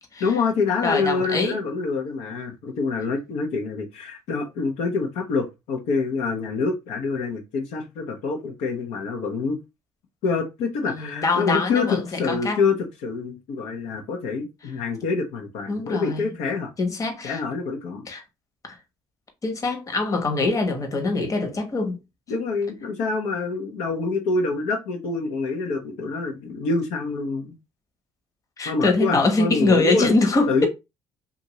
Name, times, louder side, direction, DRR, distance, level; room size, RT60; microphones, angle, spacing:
voice 1, 0.2-9.6 10.2-16.7 17.2-18.1 22.3-27.5 28.7-30.1 30.5-30.7, left 4 dB, 80° left, 0.7 m, -26 dB
voice 2, 0.8-1.6 10.9-12.6 15.7-16.2 16.8-17.4 18.1-18.2 18.6-18.8 19.4-22.0 28.6-30.7, left 3 dB, 30° left, 1.0 m, -23 dB
2.7 x 2.5 x 2.9 m
supercardioid pair, 80°, 10 cm